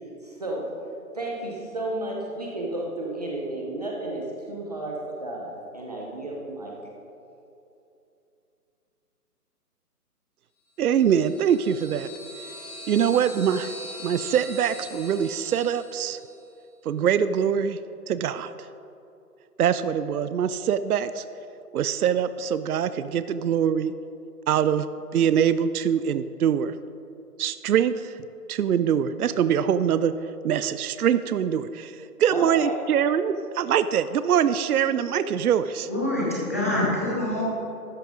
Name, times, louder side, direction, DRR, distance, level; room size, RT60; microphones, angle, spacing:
voice 1, 0.2-0.7 1.1-6.7 32.3-32.8, right 1 dB, 25° right, -2 dB, 0.7 m, -32 dB
voice 2, 10.8-12.1 12.9-13.7 14.0-16.2 16.9-17.8 18.1-18.7 19.6-21.2 21.7-23.9 24.5-26.8 27.4-28.2 28.5-30.1 30.4-35.9, right 8 dB, 70° right, 13 dB, 0.5 m, -23 dB
sound 1, 10.9-16.3, left 1 dB, 25° left, 1.3 m, -42 dB
voice 3, 35.9-37.4, left 1 dB, 10° left, -6 dB, 0.7 m, -25 dB
12.5 x 5.9 x 5.1 m, 2.7 s
hypercardioid pair, 165°, 47 cm